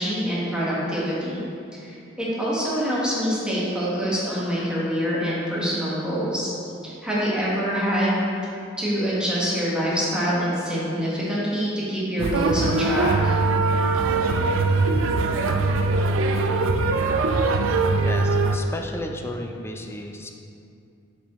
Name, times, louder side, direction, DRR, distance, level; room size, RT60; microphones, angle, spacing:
voice 1, 0.0-1.4 1.8-6.5 6.8-8.3 8.8-13.4, equal, 5° right, -8 dB, 1.3 m, -25 dB
sound 1, 12.2-18.6, right 3 dB, 70° right, 0.4 m, -22 dB
voice 2, 18.0-20.3, left 1 dB, 10° left, 3 dB, 0.4 m, -33 dB
7.0 x 4.8 x 3.5 m, 2.6 s
head